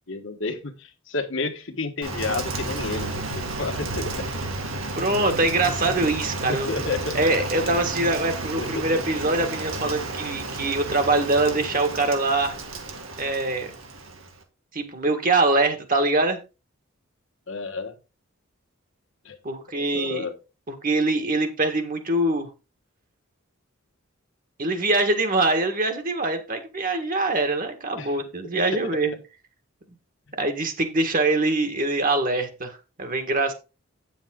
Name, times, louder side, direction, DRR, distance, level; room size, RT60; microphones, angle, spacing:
voice 1, 0.1-4.2 6.5-7.5 8.6-8.9 17.5-17.9 19.2-19.4 19.7-20.3 28.0-28.1 28.7-29.0, left 3 dB, 60° left, 1.5 m, -31 dB
Rain, 2.0-14.4, right 2 dB, 75° right, 2.2 m, -32 dB
voice 2, 5.0-6.7 7.1-12.6 13.2-13.7 14.7-16.4 19.4-20.3 20.7-22.5 24.6-29.1 30.4-33.5, right 2 dB, 40° right, 1.6 m, -23 dB
9.1 x 7.2 x 3.7 m
head